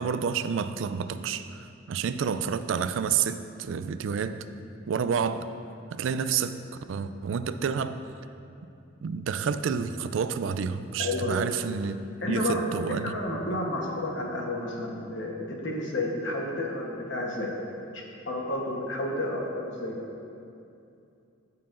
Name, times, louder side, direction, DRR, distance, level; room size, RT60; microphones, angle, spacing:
voice 1, 0.0-4.4 4.9-5.5 5.9-6.6 6.9-8.0 9.0-12.0 12.3-13.1, right 6 dB, 65° right, 11 dB, 0.3 m, -29 dB
voice 2, 11.0-11.4 12.2-12.6 12.9-17.5 17.9-20.0, left 1 dB, 65° left, -1 dB, 1.1 m, -31 dB
13.0 x 5.7 x 2.5 m, 2.6 s
head